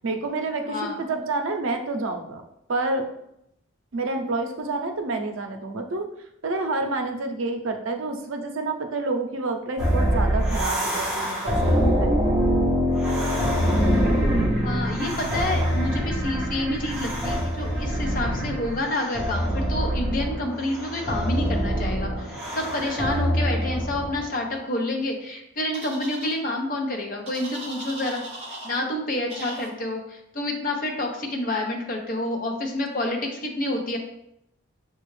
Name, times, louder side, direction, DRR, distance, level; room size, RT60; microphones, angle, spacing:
voice 1, 0.0-2.4 2.7-3.1 3.9-6.1 6.4-12.1, right 3 dB, 80° right, 5 dB, 0.6 m, -28 dB
voice 2, 0.7-1.0 14.6-28.2 28.6-34.0, left 1 dB, 40° left, 2 dB, 0.7 m, -28 dB
sound 1, 9.8-24.3, equal, ahead, 1.1 m, -24 dB
sound 2, 25.7-26.3 27.3-28.8 29.3-29.7, right 2 dB, 30° right, 1.0 m, -38 dB
6.7 x 2.4 x 3.2 m, 0.79 s
head